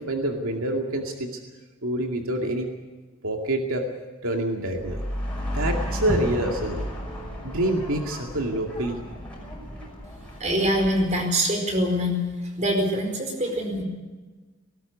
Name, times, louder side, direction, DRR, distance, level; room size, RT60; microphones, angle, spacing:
voice 1, 0.0-1.4 1.8-2.7 3.2-3.9 4.2-5.0 5.5-6.8 7.4-9.0, right 1 dB, 80° right, 2 dB, 2.3 m, -26 dB
sound 1, 4.7-11.0, equal, 5° left, 5.8 m, -32 dB
voice 2, 10.4-12.2 12.6-13.8, equal, 35° right, 4 dB, 4.6 m, -24 dB
19.0 x 18.5 x 8.1 m, 1.3 s
head